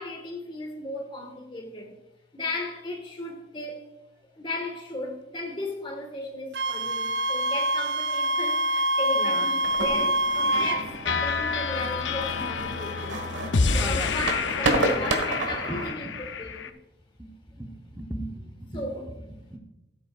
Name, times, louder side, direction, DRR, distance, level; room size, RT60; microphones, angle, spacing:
voice 1, 0.0-1.9 2.3-3.8 4.4-13.3 13.7-16.7 18.7-19.0, left 2 dB, 25° left, 1.5 m, -35 dB
Wind instrument woodwind instrument, 6.5-10.8, equal, 70° right, 0.5 m, -25 dB
voice 2, 9.1-9.5 10.5-11.2 13.8-14.2 14.8-15.1 15.5-16.1 17.2-19.6, right 1 dB, 10° right, 1.0 m, -39 dB
sound 1, 9.6-15.9, right 1 dB, 85° right, 1.5 m, -31 dB
sound 2, 10.5-16.7, left 5 dB, 90° left, 0.6 m, -29 dB
14.0 x 8.2 x 2.4 m
head